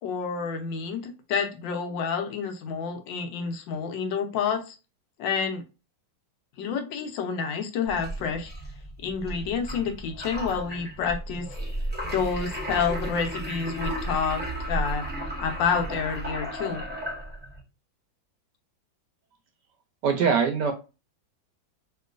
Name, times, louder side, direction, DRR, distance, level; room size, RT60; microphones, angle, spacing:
voice 1, 0.0-4.7 5.2-5.6 6.6-8.5 9.0-11.5 12.1-14.4 14.7-15.0 15.4-16.8, left 6 dB, 75° left, 5 dB, 1.3 m, -29 dB
sound 1, 7.9-17.6, right 1 dB, 10° right, 0.6 m, -34 dB
voice 2, 20.0-20.7, right 6 dB, 70° right, 5 dB, 1.1 m, -22 dB
3.0 x 2.9 x 2.4 m, 0.29 s
omnidirectional pair, 2.1 m